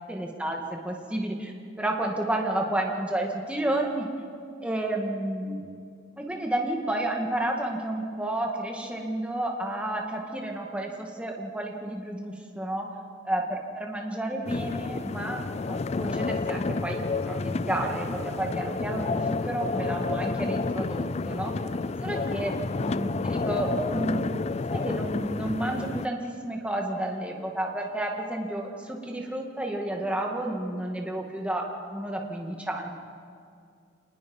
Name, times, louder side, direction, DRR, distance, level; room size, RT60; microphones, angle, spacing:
voice 1, 0.1-4.1 4.6-5.6 6.2-12.9 13.2-17.0 17.3-21.5 22.0-32.9, right 1 dB, 5° right, 0 dB, 2.0 m, -31 dB
sound 1, 14.5-26.1, left 3 dB, 35° left, 0.4 m, -30 dB
26.5 x 20.5 x 5.5 m, 2.3 s
head